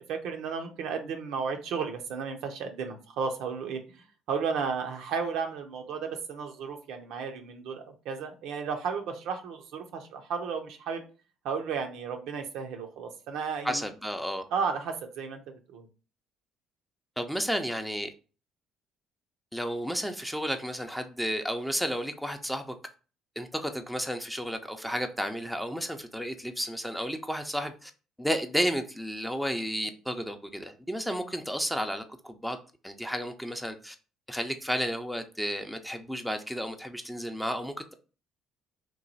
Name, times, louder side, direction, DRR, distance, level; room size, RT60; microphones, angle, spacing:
voice 1, 0.0-3.8 4.3-11.0 11.4-13.9 14.5-15.9, right 5 dB, 70° right, 4 dB, 0.6 m, -33 dB
voice 2, 13.6-14.5 17.2-18.1 19.5-22.7 23.4-27.9 28.2-32.6 32.8-34.0 34.3-37.9, equal, ahead, 5 dB, 0.5 m, -32 dB
3.0 x 2.2 x 4.0 m, 0.36 s
hypercardioid pair, 60°, 0 cm